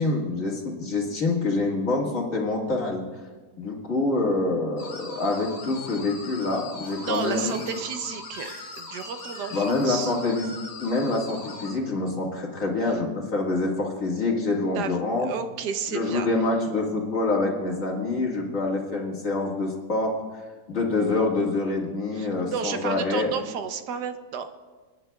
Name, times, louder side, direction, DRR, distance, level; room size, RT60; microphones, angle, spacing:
voice 1, 0.0-3.0 3.6-7.6 9.5-10.5 10.8-15.3 15.9-20.1 20.7-23.3, left 2 dB, 50° left, -1 dB, 2.1 m, -26 dB
sound 1, 4.8-11.7, left 3 dB, 80° left, 2.0 m, -40 dB
sound 2, 6.8-10.1, equal, 25° right, 4.3 m, -46 dB
voice 2, 7.0-10.1 12.8-13.0 14.7-16.3 22.1-24.5, right 6 dB, 80° right, 8 dB, 1.3 m, -32 dB
27.5 x 9.9 x 2.3 m, 1.4 s
omnidirectional pair, 1.8 m